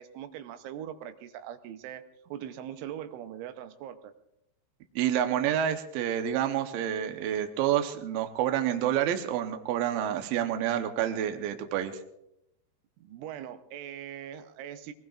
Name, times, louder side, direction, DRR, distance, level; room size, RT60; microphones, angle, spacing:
voice 1, 0.0-4.1 13.0-14.9, right 10 dB, 90° right, 9 dB, 3.3 m, -41 dB
voice 2, 5.0-12.0, right 10 dB, 75° right, 6 dB, 2.2 m, -28 dB
23.5 x 18.5 x 2.5 m, 0.83 s
omnidirectional pair, 5.3 m